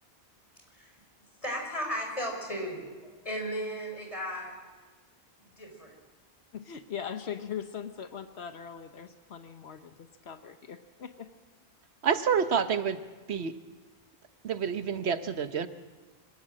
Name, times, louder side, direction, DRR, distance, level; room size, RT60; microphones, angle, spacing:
voice 1, 1.4-4.6 5.4-6.0, equal, 30° left, 1 dB, 5.2 m, -35 dB
voice 2, 6.5-11.3, left 8 dB, 80° left, 8 dB, 1.2 m, -40 dB
voice 3, 12.0-13.0 13.3-13.5 14.4-15.7, right 7 dB, 85° right, 11 dB, 1.2 m, -28 dB
25.5 x 17.0 x 7.6 m, 1.3 s
omnidirectional pair, 1.1 m